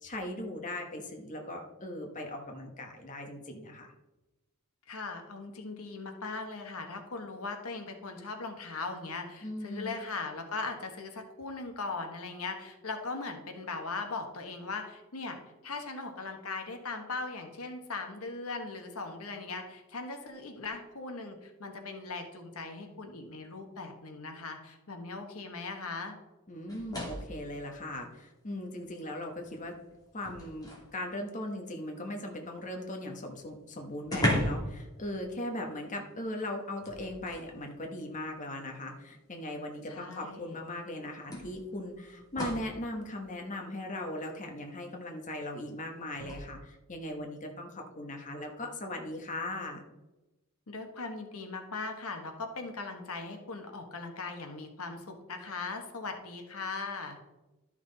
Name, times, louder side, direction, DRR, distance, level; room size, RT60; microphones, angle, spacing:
voice 1, 0.0-3.9 9.4-9.9 26.5-29.7 30.1-49.8, left 1 dB, 35° left, 2 dB, 1.2 m, -39 dB
voice 2, 4.9-15.4 15.6-26.2 39.9-40.6 50.7-57.2, left 3 dB, 70° left, 5 dB, 1.3 m, -39 dB
sound 1, 26.7-27.4 28.8-28.9 29.4-31.0 33.0-33.1 33.4-33.5 34.0-34.8 35.0-35.3 36.8-37.5 38.7-38.8 40.3-40.4 41.3-42.8 46.1-46.4, left 1 dB, 15° left, 2.6 m, -35 dB
12.5 x 6.1 x 4.0 m, 1.0 s
head